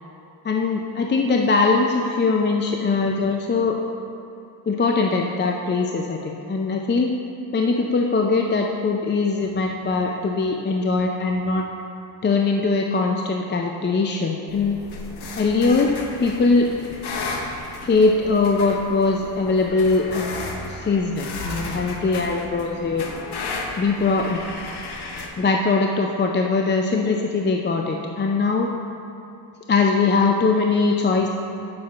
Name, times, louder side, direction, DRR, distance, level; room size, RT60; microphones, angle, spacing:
voice 1, 0.4-3.8 4.7-7.1 7.5-11.6 12.2-14.8 15.4-15.9 16.2-16.7 17.8-20.4 20.7-23.1 23.8-24.4 25.4-28.7 29.7-31.3, left 4 dB, 25° left, 1 dB, 0.4 m, -21 dB
sound 1, 14.5-25.3, left 3 dB, 50° left, 0.9 m, -34 dB
8.5 x 7.0 x 2.4 m, 2.6 s
supercardioid pair, 65°, 49 cm